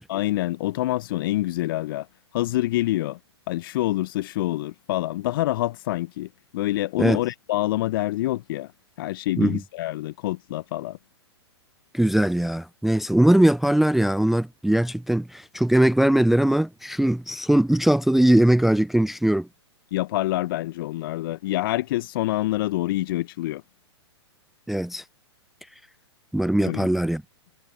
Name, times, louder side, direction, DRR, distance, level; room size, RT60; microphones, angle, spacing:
voice 1, 0.1-2.1 2.3-3.2 3.5-8.7 9.0-11.0 19.9-23.6 26.6-26.8, left 16 dB, 50° left, 1.1 m, -26 dB
voice 2, 11.9-19.5 24.7-25.0 26.3-27.2, right 1 dB, ahead, 0.4 m, -20 dB
figure-of-eight pair, 110°, 15 cm